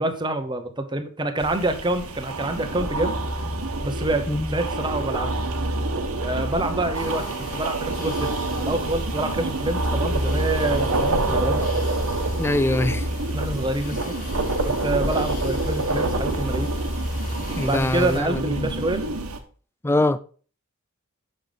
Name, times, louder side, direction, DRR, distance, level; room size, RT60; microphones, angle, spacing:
voice 1, 0.0-3.2 3.8-5.4 6.2-7.2 7.5-8.3 8.6-11.7 13.3-14.1 14.6-16.7 17.7-19.1, right 2 dB, 20° right, 0.9 m, -27 dB
sound 1, 1.4-19.4, right 2 dB, 75° right, 1.2 m, -27 dB
sound 2, 6.9-18.2, left 1 dB, 40° left, 1.6 m, -39 dB
voice 2, 12.4-13.1 17.6-18.7 19.8-20.2, left 1 dB, 10° left, 0.3 m, -23 dB
6.5 x 5.8 x 5.2 m
head